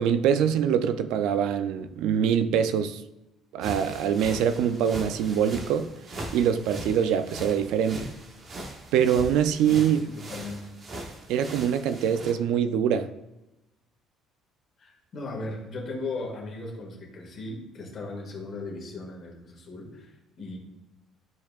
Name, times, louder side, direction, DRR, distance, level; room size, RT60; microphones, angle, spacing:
voice 1, 0.0-3.0 3.5-5.9 6.3-8.1 8.9-10.1 11.3-13.1, right 8 dB, 75° right, 0.4 m, -24 dB
sound 1, 3.6-12.3, right 1 dB, 30° right, 1.0 m, -40 dB
voice 2, 9.7-10.7 14.8-20.6, left 2 dB, 35° left, 1.9 m, -37 dB
12.0 x 4.6 x 2.4 m
cardioid pair, 160°, 0 cm